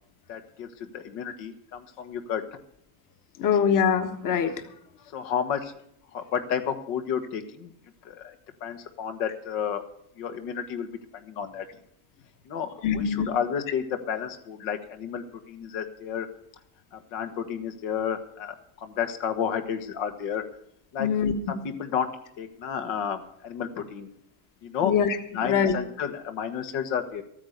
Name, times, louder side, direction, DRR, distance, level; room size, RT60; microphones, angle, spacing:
voice 1, 0.3-2.4 5.1-5.7 6.1-7.7 8.0-8.3 8.6-9.8 10.2-11.6 12.4-16.3 16.9-20.4 20.9-21.1 21.5-22.1 22.4-24.1 24.6-24.9 25.3-27.2, left 8 dB, 80° left, 7 dB, 1.7 m, -31 dB
voice 2, 3.4-4.5 12.8-13.3 21.0-21.3 24.8-25.7, left 7 dB, 45° left, 7 dB, 1.5 m, -23 dB
14.0 x 9.5 x 6.6 m, 0.71 s
cardioid pair, 135°, 44 cm